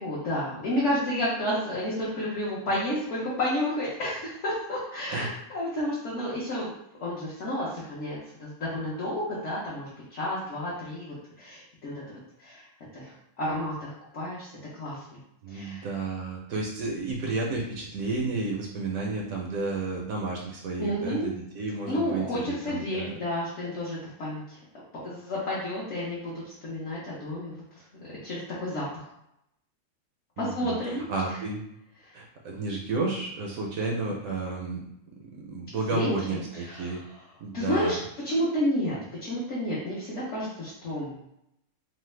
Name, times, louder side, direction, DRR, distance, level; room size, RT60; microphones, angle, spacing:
voice 1, 0.0-6.7 7.0-12.6 12.9-15.2 15.5-15.9 20.8-21.3 21.8-24.6 25.0-27.6 28.0-29.1 30.4-31.0 32.0-32.1 35.9-37.0 37.5-38.0 38.2-41.2, left 1 dB, 60° left, -8 dB, 1.1 m, -31 dB
voice 2, 15.4-23.1 30.4-30.8 31.1-31.6 32.1-34.8 35.4-37.0 37.4-38.0, right 3 dB, 75° right, -1 dB, 1.0 m, -31 dB
3.2 x 2.1 x 3.1 m, 0.78 s
omnidirectional pair, 1.5 m